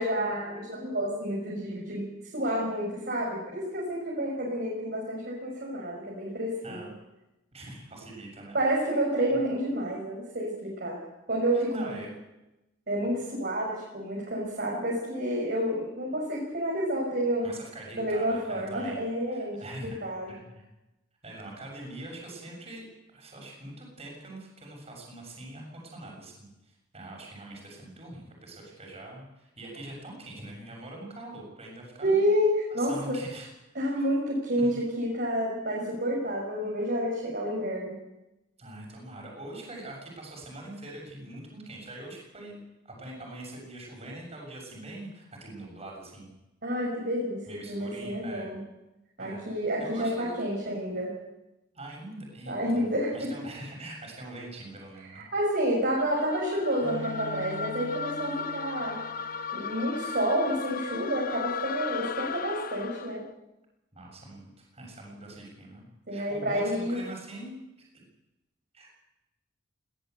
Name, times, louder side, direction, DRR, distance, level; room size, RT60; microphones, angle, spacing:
voice 1, 0.0-2.1 2.3-6.9 8.5-11.0 11.3-11.9 12.9-17.4 17.9-20.3 32.0-33.1 33.7-37.9 46.6-48.6 49.2-51.1 52.5-53.3 55.1-59.0 59.5-63.2 66.1-67.0, equal, 55° right, -3 dB, 6.1 m, -29 dB
voice 2, 7.5-8.6 11.5-12.1 17.4-19.0 19.3-20.0 20.3-20.6 21.2-22.9 23.1-32.2 32.8-33.5 34.0-34.1 34.6-34.7 38.6-42.6 42.8-46.3 47.5-48.5 49.2-50.4 51.7-55.3 63.9-67.6 67.9-68.0 68.7-68.9, right 1 dB, 35° right, -1 dB, 7.1 m, -43 dB
sound 1, 56.0-63.2, left 6 dB, 50° left, 0.9 m, -36 dB
Bowed string instrument, 56.8-59.8, left 3 dB, 90° right, 4.6 m, -44 dB
20.5 x 18.0 x 8.2 m, 0.95 s
head